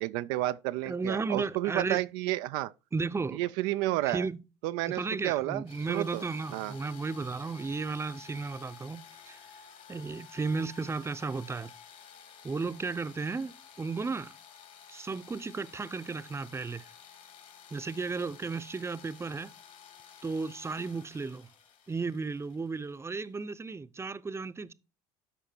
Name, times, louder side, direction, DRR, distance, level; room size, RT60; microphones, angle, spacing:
voice 1, 0.0-2.7 3.3-4.3 4.6-6.2 6.5-6.7, right 16 dB, 80° right, 0.4 m, -31 dB
voice 2, 0.9-2.0 2.9-3.4 4.0-4.4 4.9-9.4 9.9-11.7 12.4-14.3 14.9-16.8 17.7-19.5 20.2-21.5 21.9-24.7, right 4 dB, 20° right, 0.7 m, -34 dB
sound 1, 5.7-23.4, left 7 dB, 60° left, 3.1 m, -53 dB
12.5 x 5.1 x 4.4 m
supercardioid pair, 75°, 15 cm